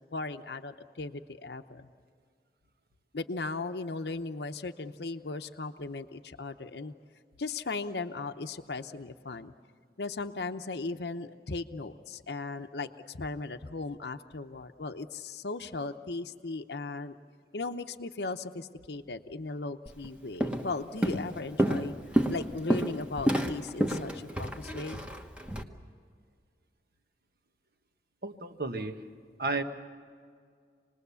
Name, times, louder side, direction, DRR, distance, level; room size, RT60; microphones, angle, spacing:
voice 1, 0.1-1.9 3.1-6.9 7.4-9.5 10.0-17.2 17.5-21.9 22.3-25.1, left 3 dB, 75° left, 7 dB, 0.8 m, -37 dB
Walk footsteps, 19.9-20.1 20.4-20.7 21.0-25.6, right 1 dB, 5° right, 1.1 m, -29 dB
voice 2, 28.2-29.0 29.4-29.6, right 3 dB, 55° right, 7 dB, 1.3 m, -32 dB
27.5 x 20.0 x 7.0 m, 2.1 s
head